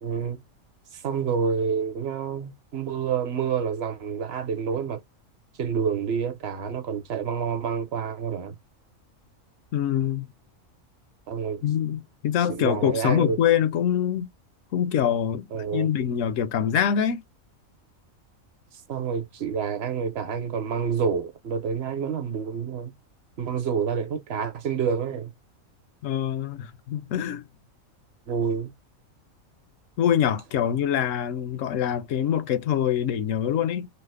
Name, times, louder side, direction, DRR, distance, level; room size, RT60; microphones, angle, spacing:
voice 1, 0.0-0.4 0.9-5.0 5.6-8.6 11.3-11.6 12.5-13.4 15.5-15.9 18.9-22.9 23.4-25.3 28.3-28.7, right 6 dB, 55° right, 1.0 m, -28 dB
voice 2, 9.7-10.3 11.6-14.3 14.7-15.5 15.7-17.2 26.0-27.4 30.0-33.9, left 9 dB, 70° left, 0.9 m, -24 dB
3.2 x 2.0 x 3.3 m
omnidirectional pair, 1.4 m